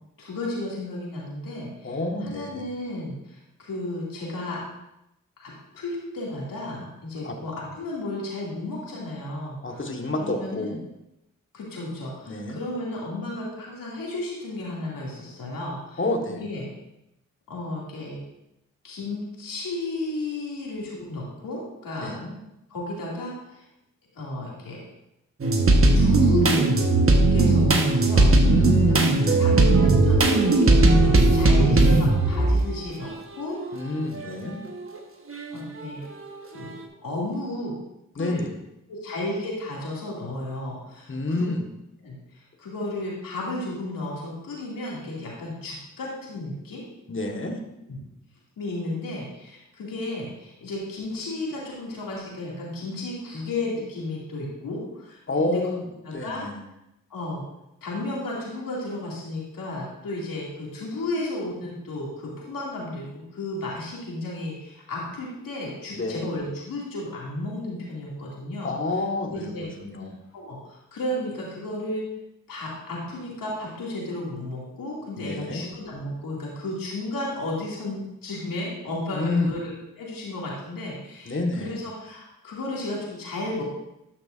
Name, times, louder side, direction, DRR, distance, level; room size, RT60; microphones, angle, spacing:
voice 1, 0.2-4.6 5.4-9.9 10.2-10.8 11.5-16.0 16.3-16.7 17.5-18.2 18.8-22.1 22.7-23.6 24.1-24.8 25.9-26.7 27.3-28.3 28.9-34.0 35.5-36.0 36.5-36.7 37.0-37.7 38.2-38.4 38.9-41.5 42.0-46.8 47.9-48.0 48.6-55.6 56.1-56.5 57.1-57.4 57.8-68.7 69.3-69.7 70.3-72.0 72.5-79.7 80.0-83.6, left 2 dB, 80° left, -4 dB, 2.4 m, -33 dB
voice 2, 1.8-2.6 7.2-7.4 9.6-10.7 12.3-12.6 16.0-16.4 22.0-22.3 28.4-29.4 33.7-34.6 38.2-38.5 41.1-41.7 47.1-47.6 55.3-55.8 56.1-56.5 65.9-66.2 68.6-70.1 75.2-75.6 79.1-79.5 81.2-81.8, left 2 dB, 35° left, 2 dB, 1.5 m, -28 dB
sound 1, 25.4-32.8 33.3-34.2 34.8-35.0 35.3-36.3, right 2 dB, 40° right, 1.3 m, -18 dB
12.0 x 5.9 x 2.6 m, 0.87 s
supercardioid pair, 40°, 33 cm